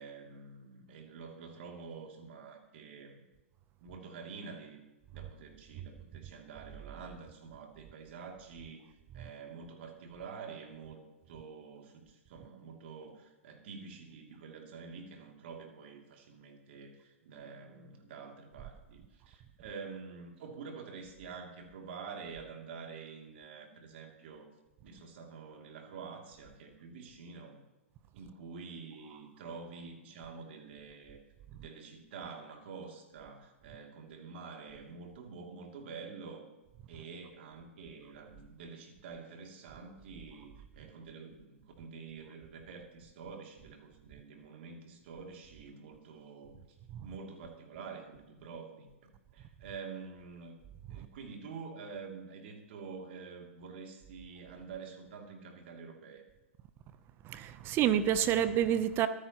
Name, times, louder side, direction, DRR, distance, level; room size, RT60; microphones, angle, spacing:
voice 1, 0.0-3.2 3.8-4.8 5.1-8.8 9.1-24.5 24.8-27.6 28.1-31.2 31.5-36.5 36.9-46.6 47.0-50.6 50.9-56.2, right 5 dB, 55° right, 2.8 m, -47 dB
voice 2, 57.2-59.1, right 10 dB, 30° right, 0.8 m, -28 dB
26.0 x 9.9 x 3.0 m
figure-of-eight pair, 110°, 7 cm